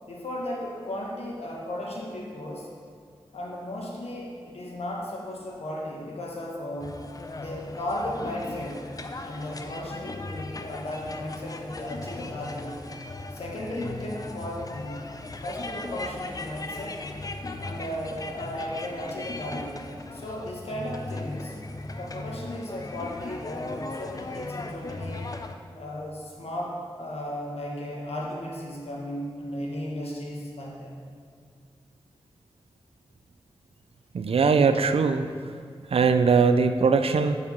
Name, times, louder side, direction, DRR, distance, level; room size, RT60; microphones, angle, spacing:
voice 1, 0.1-2.7 3.3-7.0 7.4-8.9 9.2-12.8 13.3-15.0 15.4-17.0 17.6-21.6 22.0-25.3 25.7-31.0, left 1 dB, 85° left, -2 dB, 1.3 m, -35 dB
sound 1, 6.8-25.6, left 2 dB, 35° left, 0.5 m, -38 dB
voice 2, 34.1-35.3 35.9-37.4, right 5 dB, 75° right, 9 dB, 0.4 m, -21 dB
7.3 x 4.9 x 5.3 m, 2.1 s
cardioid pair, 55°, 10 cm